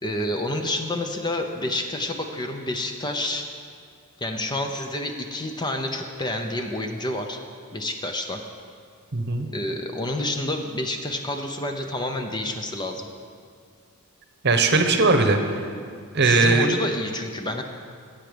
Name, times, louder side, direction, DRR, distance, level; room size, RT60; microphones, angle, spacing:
voice 1, 0.0-3.4 4.2-7.4 7.7-8.4 9.5-13.1 16.2-17.6, left 1 dB, 20° left, 4 dB, 0.7 m, -28 dB
voice 2, 9.1-9.5 14.4-15.6 16.1-16.7, right 3 dB, 50° right, 6 dB, 1.0 m, -19 dB
15.5 x 7.8 x 5.1 m, 2.2 s
head